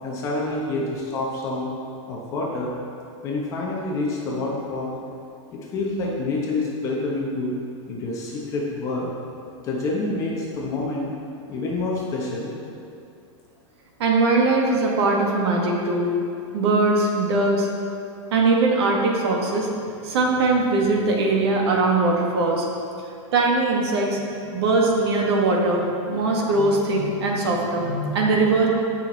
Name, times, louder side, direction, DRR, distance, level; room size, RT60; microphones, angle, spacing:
voice 1, 0.0-1.7 2.1-2.7 3.2-4.9 5.5-7.6 7.9-9.1 9.6-11.1 11.5-12.5, left 2 dB, 20° left, -3 dB, 1.2 m, -27 dB
voice 2, 14.0-16.1 16.5-17.7 18.3-19.7 20.0-22.7 23.3-24.2 24.5-28.7, right 3 dB, 55° right, -1 dB, 1.7 m, -21 dB
15.0 x 6.2 x 4.0 m, 2.6 s
supercardioid pair, 180°, 16 cm